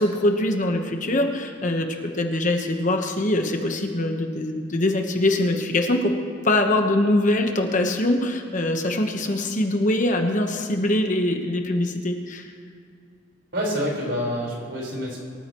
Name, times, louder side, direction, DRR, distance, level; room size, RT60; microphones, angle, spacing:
voice 1, 0.0-6.1 6.4-12.5, left 1 dB, 40° left, 4 dB, 1.2 m, -23 dB
voice 2, 13.5-15.2, equal, 60° right, -3 dB, 4.7 m, -27 dB
25.0 x 13.5 x 3.1 m, 2.3 s
head